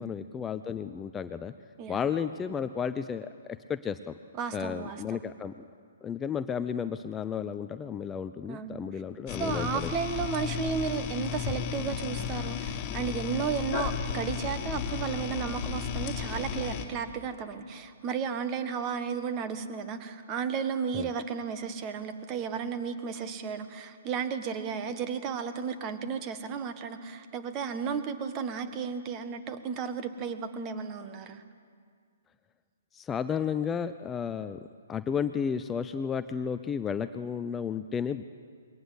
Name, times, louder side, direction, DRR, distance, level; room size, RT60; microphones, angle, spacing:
voice 1, 0.0-1.5 1.9-4.2 4.5-5.5 6.0-9.9 20.9-21.1 32.9-34.6 34.9-38.2, left 7 dB, 15° left, 11 dB, 0.5 m, -33 dB
voice 2, 4.3-5.2 8.5-8.7 9.4-31.4, right 6 dB, 30° right, 9 dB, 1.6 m, -33 dB
sound 1, 9.3-16.9, left 8 dB, 35° left, 2.0 m, -34 dB
22.0 x 18.0 x 8.1 m, 2.1 s
hypercardioid pair, 135°, 0 cm